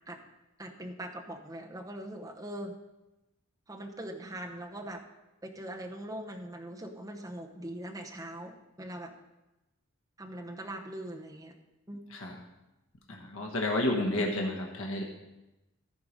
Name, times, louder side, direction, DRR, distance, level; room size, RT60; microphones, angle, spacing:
voice 1, 0.6-2.7 3.7-5.0 5.4-9.1 10.2-11.5 11.9-12.0, right 1 dB, 15° right, 2 dB, 0.8 m, -41 dB
voice 2, 13.1-15.0, left 1 dB, 70° left, 1 dB, 1.2 m, -31 dB
14.5 x 4.8 x 5.2 m, 1.0 s
head